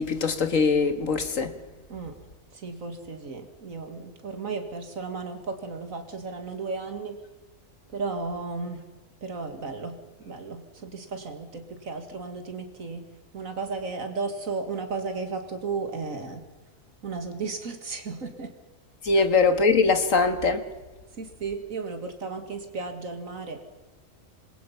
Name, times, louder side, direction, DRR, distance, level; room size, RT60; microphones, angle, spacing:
voice 1, 0.0-1.6 19.0-20.7, left 4 dB, 75° left, 2.0 m, -22 dB
voice 2, 2.5-7.2 7.9-8.8 9.2-10.0 10.2-13.1 13.3-16.5 17.0-18.5 19.1-19.3 21.2-23.6, right 4 dB, 80° right, 2.3 m, -34 dB
27.5 x 21.0 x 5.8 m
omnidirectional pair, 1.4 m